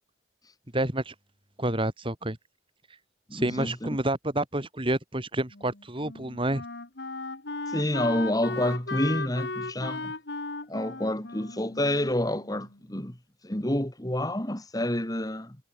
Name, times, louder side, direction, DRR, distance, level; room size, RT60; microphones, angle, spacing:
voice 1, 0.7-1.1 1.6-2.4 3.3-6.6, right 1 dB, 25° right, 2.8 m, -29 dB
voice 2, 3.3-3.9 7.7-10.1 10.7-13.2 13.4-15.6, left 1 dB, 20° left, 2.1 m, -28 dB
Wind instrument woodwind instrument, 5.5-12.8, left 3 dB, 60° left, 1.9 m, -36 dB
head